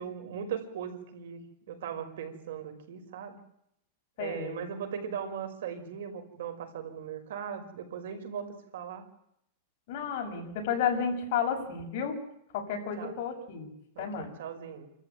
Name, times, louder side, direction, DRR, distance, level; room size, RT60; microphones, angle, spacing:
voice 1, 0.0-3.4 4.2-9.0 13.0-13.1 14.0-14.9, right 8 dB, 75° right, 6 dB, 5.5 m, -39 dB
voice 2, 4.2-4.6 9.9-12.2 12.5-13.7 14.0-14.3, left 7 dB, 45° left, 3 dB, 6.4 m, -32 dB
29.5 x 14.0 x 9.4 m, 0.77 s
supercardioid pair, 175°, 0 cm